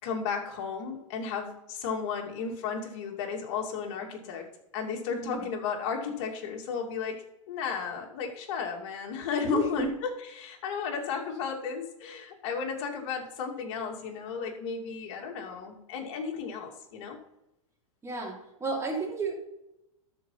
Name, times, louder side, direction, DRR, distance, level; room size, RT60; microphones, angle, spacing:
voice 1, 0.0-4.5 4.7-17.2, left 6 dB, 55° left, 1 dB, 2.7 m, -34 dB
voice 2, 5.1-5.4 9.4-9.9 18.0-19.3, right 3 dB, 15° right, -2 dB, 3.4 m, -32 dB
13.0 x 5.6 x 5.7 m, 0.90 s
hypercardioid pair, 115°, 17 cm